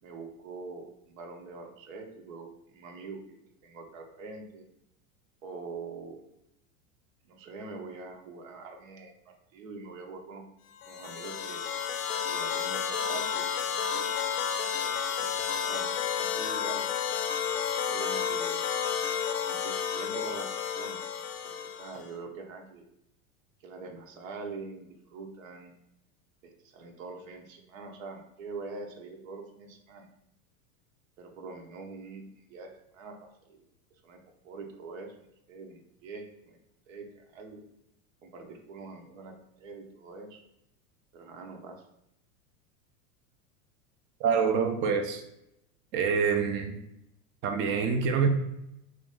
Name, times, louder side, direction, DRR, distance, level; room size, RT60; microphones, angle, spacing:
voice 1, 0.0-4.7 5.4-6.2 7.3-10.4 10.9-11.6 12.2-14.1 15.0-16.8 17.1-17.2 17.8-18.6 19.4-20.5 20.7-21.0 21.4-22.8 23.6-25.7 26.4-30.1 31.2-33.6 34.0-34.2 34.4-35.1 35.5-36.6 36.9-37.6 38.2-40.4 41.1-41.8, right 4 dB, 75° right, 3 dB, 0.8 m, -44 dB
sound 1, 10.8-22.1, left 7 dB, 80° left, 0.5 m, -31 dB
voice 2, 44.2-45.2 45.9-46.8 47.4-48.3, right 6 dB, 30° right, 4 dB, 0.4 m, -26 dB
3.0 x 2.7 x 3.5 m, 0.82 s
hypercardioid pair, 110°, 40 cm